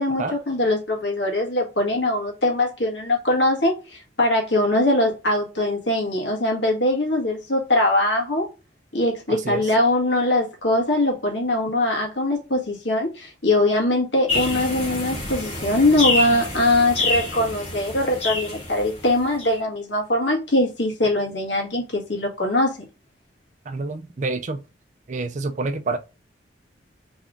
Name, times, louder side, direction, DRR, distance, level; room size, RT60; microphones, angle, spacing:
voice 1, 0.0-8.5 8.9-22.8, left 1 dB, 70° left, 1.7 m, -22 dB
voice 2, 9.3-9.6 23.7-24.6 25.1-26.0, right 3 dB, 40° right, 0.5 m, -27 dB
sound 1, 14.3-19.6, left 2 dB, 35° left, 1.8 m, -27 dB
3.7 x 3.5 x 3.6 m
head